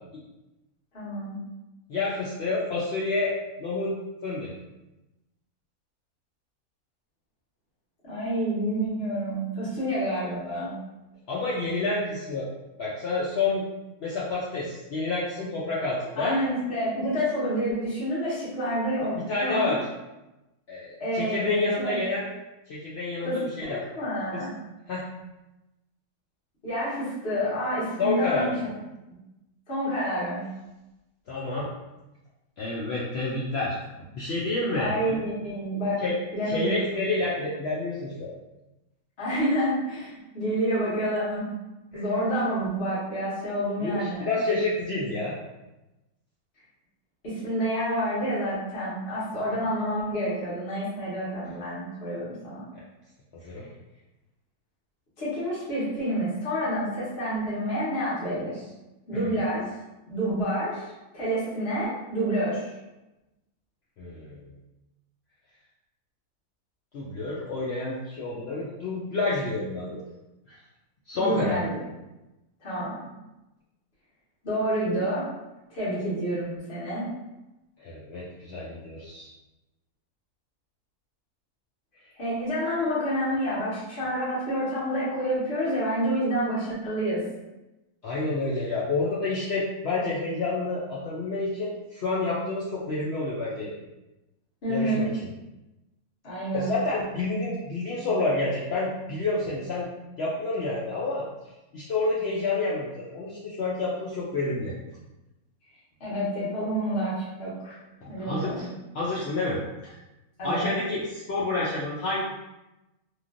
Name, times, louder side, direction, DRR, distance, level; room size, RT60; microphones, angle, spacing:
voice 1, 0.9-1.3 8.0-10.7 16.2-19.8 21.0-22.0 23.2-23.4 23.7-24.5 26.6-28.5 29.7-30.4 34.7-36.0 36.3-36.7 39.2-41.5 41.9-44.3 47.2-52.7 55.2-58.7 59.1-59.7 60.1-62.7 71.1-71.8 72.6-73.0 74.4-75.3 75.7-77.1 82.2-87.2 94.6-95.0 96.2-96.7 106.0-107.8 108.1-108.6 110.4-110.7, equal, 45° left, -10 dB, 1.3 m, -28 dB
voice 2, 1.9-3.3 3.6-3.9 4.2-4.5 11.3-12.5 12.8-13.6 14.0-16.4 19.1-19.8 20.7-22.3 22.7-23.8 24.3-24.4 24.9-25.0 28.0-28.6 31.3-31.7 32.6-33.8 34.1-35.2 36.0-36.1 36.5-38.3 41.9-42.0 43.8-45.4 53.4-53.7 59.1-59.3 64.0-64.5 66.9-70.0 70.5-70.6 71.1-71.6 77.8-79.3 88.0-93.7 94.7-95.3 96.5-99.9 100.2-101.3 101.7-104.7 108.0-108.7 108.9-110.0 110.4-112.2, left 3 dB, 75° left, -6 dB, 0.6 m, -29 dB
3.1 x 2.4 x 2.5 m, 1.0 s
omnidirectional pair, 1.6 m